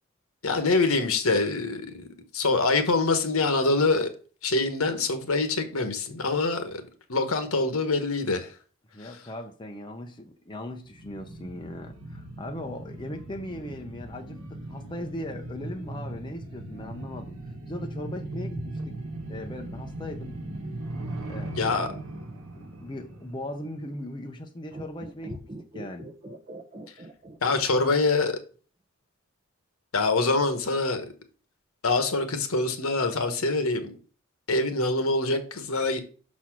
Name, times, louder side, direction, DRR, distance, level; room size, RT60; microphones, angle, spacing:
voice 1, 0.4-2.1 2.3-4.1 4.4-6.8 7.1-8.5 9.0-9.2 21.6-21.9 27.4-28.4 29.9-31.1 31.8-33.9 34.5-36.0, left 3 dB, 80° left, 1.2 m, -25 dB
voice 2, 8.9-17.4 17.7-19.0 19.3-20.3 21.2-21.8 22.5-25.4 25.7-26.1, left 1 dB, 20° left, 0.7 m, -38 dB
sound 1, 10.9-24.1 24.4-24.5, right 1 dB, 80° right, 1.2 m, -38 dB
sound 2, 24.6-28.1 28.3-28.4, right 2 dB, 30° right, 0.8 m, -42 dB
6.0 x 4.3 x 6.0 m
head